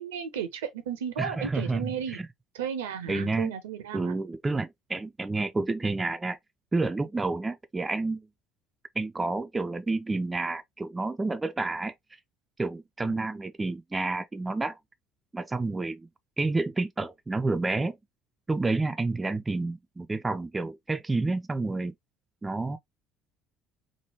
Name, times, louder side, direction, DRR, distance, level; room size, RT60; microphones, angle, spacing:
voice 1, 0.0-2.2 2.5-4.1, right 8 dB, 70° right, 0.6 m, -34 dB
voice 2, 1.2-2.3 3.1-3.5 3.9-6.4 6.7-8.3 9.0-11.9 12.6-14.8 15.3-16.1 16.4-18.0 18.5-21.9 22.4-22.8, right 3 dB, 15° right, 0.3 m, -29 dB
3.3 x 2.1 x 2.8 m
figure-of-eight pair, 55°, 0 cm